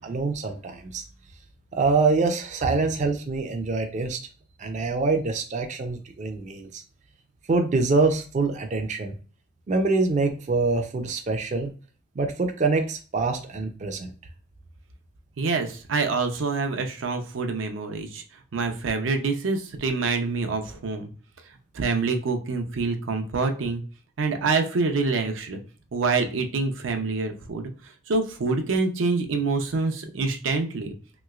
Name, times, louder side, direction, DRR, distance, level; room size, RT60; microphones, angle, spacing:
voice 1, 0.0-1.0 1.7-4.2 4.6-6.8 7.5-9.2 9.7-11.7 12.2-14.1, right 3 dB, 40° right, 5 dB, 0.3 m, -25 dB
voice 2, 15.4-18.2 18.5-21.1 21.7-23.8 24.2-25.6 25.9-30.9, right 4 dB, 90° right, 5 dB, 0.5 m, -26 dB
3.0 x 3.0 x 2.3 m, 0.38 s
head